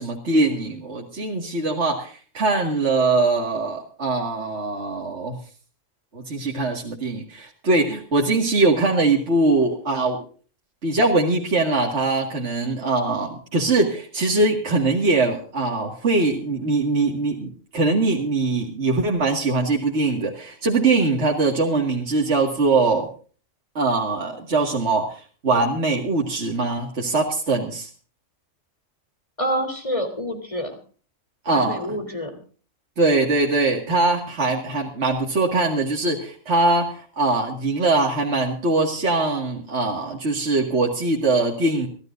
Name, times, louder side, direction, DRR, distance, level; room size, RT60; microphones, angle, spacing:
voice 1, 0.0-5.4 6.1-10.2 10.8-23.1 23.8-27.9 31.4-32.0 33.0-41.9, right 3 dB, 60° right, 0 dB, 2.3 m, -22 dB
voice 2, 29.4-30.8 31.5-32.3, equal, 25° left, 6 dB, 3.7 m, -27 dB
25.0 x 14.5 x 2.6 m, 0.41 s
omnidirectional pair, 1.3 m